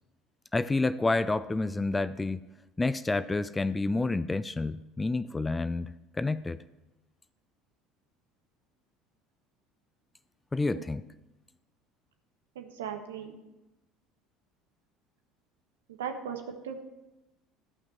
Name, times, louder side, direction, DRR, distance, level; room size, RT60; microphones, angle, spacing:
voice 1, 0.5-2.4 2.8-5.9 6.1-6.6 10.5-11.0, left 3 dB, 15° left, 15 dB, 0.4 m, -29 dB
voice 2, 12.5-13.4 15.9-16.8, right 7 dB, 80° right, 5 dB, 1.3 m, -38 dB
14.0 x 5.8 x 7.6 m, 1.0 s
hypercardioid pair, 65°, 0 cm